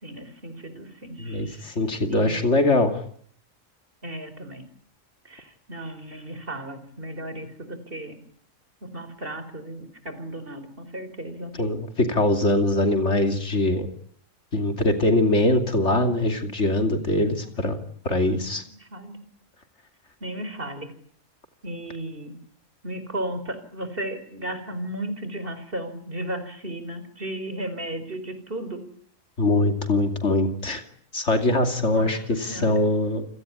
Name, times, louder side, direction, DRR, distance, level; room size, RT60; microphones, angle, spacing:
voice 1, 0.0-1.7 2.1-2.5 4.0-4.6 5.2-8.2 8.9-11.5 18.8-19.2 20.2-20.9 21.6-22.4 22.8-28.8 31.9-32.8, right 1 dB, 45° right, 11 dB, 4.5 m, -35 dB
voice 2, 1.2-3.0 11.6-13.9 14.5-17.8 18.0-18.6 29.4-30.8 31.1-33.3, left 2 dB, 60° left, 6 dB, 3.0 m, -22 dB
29.0 x 18.0 x 9.8 m, 0.62 s
omnidirectional pair, 1.3 m